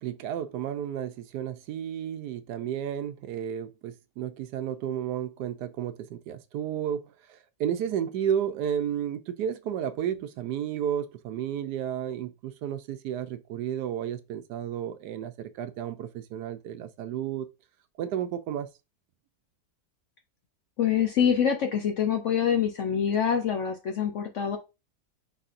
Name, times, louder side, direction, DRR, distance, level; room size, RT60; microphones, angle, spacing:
voice 1, 0.0-17.5 18.0-18.7, right 9 dB, 80° right, 1.1 m, -32 dB
voice 2, 20.8-24.6, left 8 dB, 65° left, 0.8 m, -25 dB
4.7 x 4.1 x 2.5 m
omnidirectional pair, 1.8 m